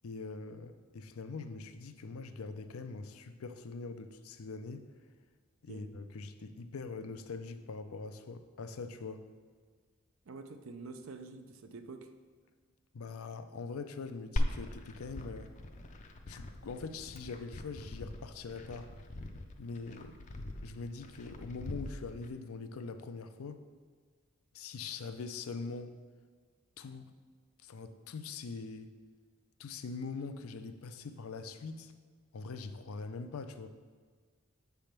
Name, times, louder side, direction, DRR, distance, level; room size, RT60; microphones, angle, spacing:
voice 1, 0.0-4.8 5.6-9.2 12.9-15.5 16.3-18.9 19.6-20.2 20.6-23.6 24.5-25.9 26.8-27.1 27.6-28.9 29.6-31.9 32.3-33.7, left 4 dB, 90° left, 9 dB, 0.5 m, -43 dB
voice 2, 10.3-12.1, right 3 dB, 75° right, 8 dB, 0.5 m, -47 dB
Glass, 14.4-22.3, left 1 dB, 35° left, 0.4 m, -40 dB
7.6 x 3.5 x 5.9 m, 1.5 s
head